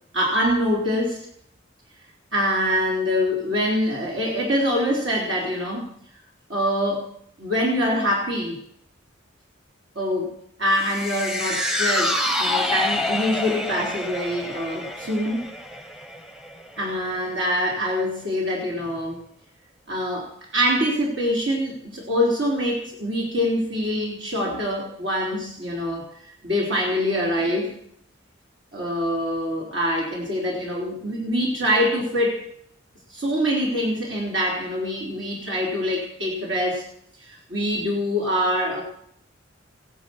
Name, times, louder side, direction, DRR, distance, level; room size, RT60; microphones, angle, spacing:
voice 1, 0.1-1.3 2.3-5.9 6.5-7.1 7.4-8.6 10.0-10.3 10.6-15.4 16.8-19.2 19.9-27.7 28.7-32.5 33.1-36.8 37.2-38.8, equal, 65° right, -2 dB, 3.8 m, -24 dB
sound 1, 10.8-17.2 17.6-17.7, left 1 dB, 5° right, 0.8 m, -27 dB
16.0 x 11.0 x 7.2 m, 0.68 s
head